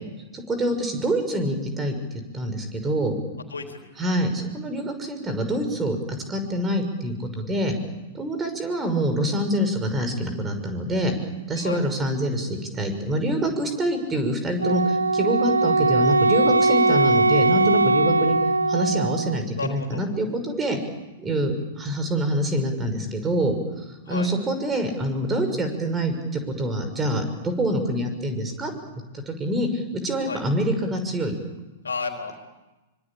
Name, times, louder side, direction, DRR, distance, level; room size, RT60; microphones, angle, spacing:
voice 1, 0.3-1.9 2.3-3.1 4.0-6.0 6.3-7.7 8.1-11.1 11.5-18.4 18.7-20.8 21.2-23.5 24.1-28.7 29.1-31.3, right 1 dB, 15° right, 7 dB, 6.0 m, -26 dB
voice 2, 3.5-3.9 11.6-11.9 19.6-20.0 24.1-24.3 30.2-30.4 31.8-32.4, left 4 dB, 80° left, 4 dB, 3.9 m, -32 dB
Wind instrument woodwind instrument, 14.6-19.4, right 3 dB, 85° right, 1.3 m, -20 dB
25.0 x 24.5 x 8.8 m, 1.1 s
figure-of-eight pair, 105°, 0 cm